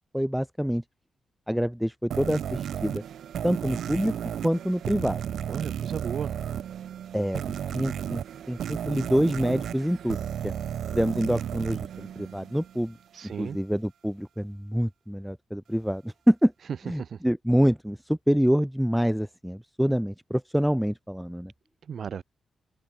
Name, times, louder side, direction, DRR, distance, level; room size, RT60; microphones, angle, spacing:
voice 1, 0.1-0.8 1.5-3.0 3.4-4.1 4.4-5.2 7.1-7.4 7.7-8.2 8.5-10.2 10.4-10.5 10.9-13.0 13.4-16.5 16.8-21.5, equal, ahead, 3.4 m, -26 dB
sound 1, 2.1-12.9, right 9 dB, 80° right, 4.9 m, -34 dB
voice 2, 5.5-6.4 13.1-13.6 17.0-17.2 21.9-22.2, right 7 dB, 65° right, 4.8 m, -35 dB
open air
cardioid pair, 70°, 0 cm